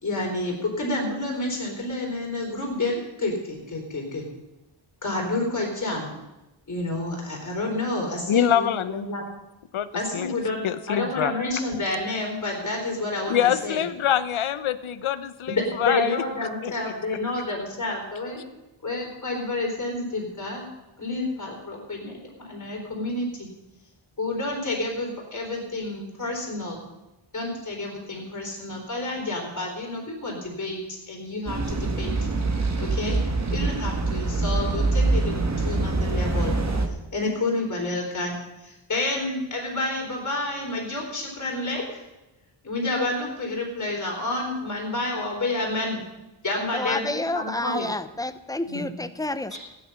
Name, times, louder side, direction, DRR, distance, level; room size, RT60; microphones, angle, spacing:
voice 1, 0.0-4.2 5.0-6.1 6.7-9.3 9.9-10.6 10.9-13.8 15.5-18.4 18.8-20.6 21.0-23.5 24.2-26.8 27.3-32.1 32.8-33.2 33.5-36.5 37.1-42.0 42.6-46.1 46.4-47.9 48.6-48.9, left 2 dB, 40° left, -1 dB, 3.9 m, -29 dB
voice 2, 8.3-9.1 9.7-9.9 10.1-10.3 10.6-11.3 13.3-16.2 16.6-16.7, left 10 dB, 75° left, 14 dB, 0.9 m, -24 dB
sound 1, 31.5-36.9, right 3 dB, 35° right, 1.5 m, -24 dB
voice 3, 46.7-49.6, left 2 dB, 10° left, 12 dB, 0.6 m, -29 dB
15.5 x 10.0 x 5.7 m, 1.0 s
wide cardioid pair, 130°, 48 cm